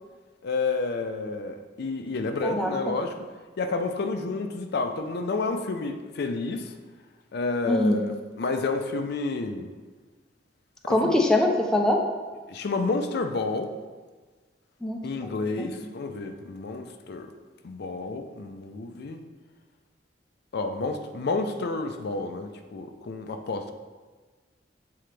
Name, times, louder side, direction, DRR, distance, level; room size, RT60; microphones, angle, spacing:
voice 1, 0.4-3.1 3.6-6.7 7.3-9.7 10.8-11.2 12.5-13.7 15.0-17.3 17.6-19.2 20.5-23.6, left 3 dB, 60° left, 6 dB, 0.4 m, -30 dB
voice 2, 7.7-8.0 10.9-12.0 14.8-15.9, left 1 dB, 5° left, 1 dB, 0.5 m, -24 dB
7.6 x 3.8 x 3.3 m, 1.4 s
head